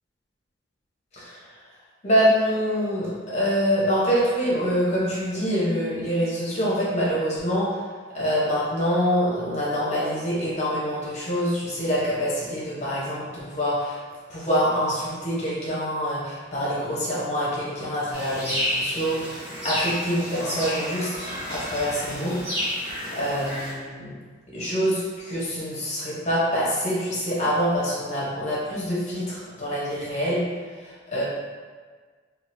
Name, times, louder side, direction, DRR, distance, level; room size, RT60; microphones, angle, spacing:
voice 1, 2.0-7.8 8.1-14.0 14.3-22.4 23.1-24.1 24.5-30.4 30.8-31.2, equal, 35° left, -7 dB, 0.9 m, -25 dB
sound 1, 18.1-23.7, equal, 10° right, 1.1 m, -30 dB
3.8 x 2.4 x 2.7 m, 1.5 s
head